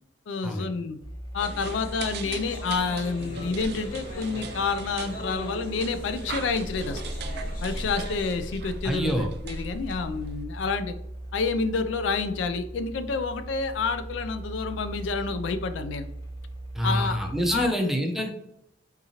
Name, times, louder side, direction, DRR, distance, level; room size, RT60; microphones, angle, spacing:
voice 1, 0.3-1.0 1.3-7.0 7.6-11.0 11.3-16.1 16.8-17.2 17.5-17.7, left 4 dB, 75° left, 10 dB, 0.3 m, -29 dB
sound 1, 1.0-17.7, right 1 dB, 20° left, 1.0 m, -38 dB
sound 2, 1.4-8.3, equal, 50° left, 0.9 m, -41 dB
sound 3, 1.4-10.4, right 7 dB, 60° right, 0.4 m, -42 dB
voice 2, 8.8-9.3 16.7-18.3, equal, ahead, 2 dB, 0.5 m, -26 dB
3.6 x 2.9 x 2.7 m, 0.76 s
head